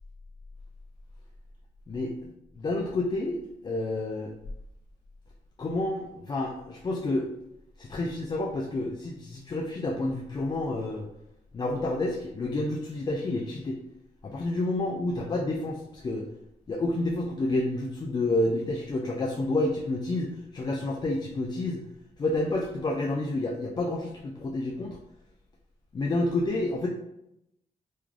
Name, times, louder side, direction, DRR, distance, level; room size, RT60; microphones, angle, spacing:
voice 1, 2.6-3.4 3.6-4.3 5.6-7.3 7.8-11.1 11.5-13.8 14.2-16.3 16.7-21.8 22.2-25.0 25.9-26.9, left 2 dB, 30° left, 0 dB, 0.3 m, -29 dB
3.1 x 2.3 x 3.6 m, 0.83 s
wide cardioid pair, 130°, 15 cm